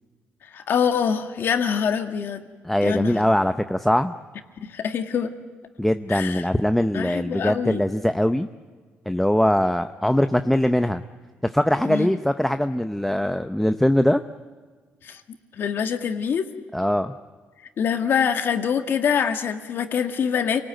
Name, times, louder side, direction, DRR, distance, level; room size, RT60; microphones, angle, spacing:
voice 1, 0.5-2.4 2.8-3.3 4.6-5.3 6.1-6.4 6.9-7.8 11.9-12.1 15.0-15.2 15.5-16.5 17.8-20.6, left 7 dB, 60° left, 7 dB, 1.9 m, -24 dB
voice 2, 2.6-4.1 5.8-8.5 9.1-11.0 11.4-14.2 16.7-17.1, left 1 dB, 5° left, 9 dB, 0.6 m, -21 dB
28.0 x 19.0 x 9.2 m, 1.5 s
cardioid pair, 130°, 4 cm